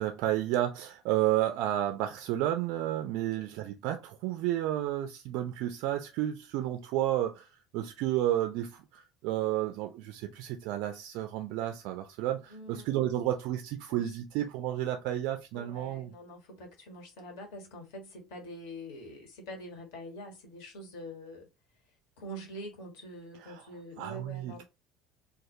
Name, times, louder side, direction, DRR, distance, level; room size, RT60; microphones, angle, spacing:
voice 1, 0.0-7.5 7.7-16.1 23.4-23.6 24.0-24.6, right 13 dB, 55° right, 0.3 m, -31 dB
voice 2, 12.5-13.1 13.9-14.2 15.5-21.5 22.2-24.6, equal, 60° left, 0.9 m, -45 dB
2.2 x 2.1 x 2.7 m
figure-of-eight pair, 60°, 0 cm